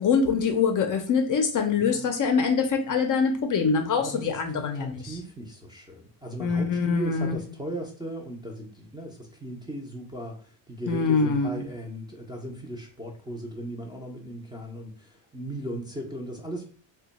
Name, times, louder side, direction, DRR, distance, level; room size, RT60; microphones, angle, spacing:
voice 1, 0.0-4.9 6.4-7.3 10.9-11.5, left 5 dB, 45° left, 5 dB, 0.5 m, -24 dB
voice 2, 1.8-2.2 3.9-16.6, right 1 dB, 10° right, -3 dB, 0.5 m, -37 dB
2.9 x 2.2 x 3.9 m, 0.41 s
cardioid pair, 150°, 46 cm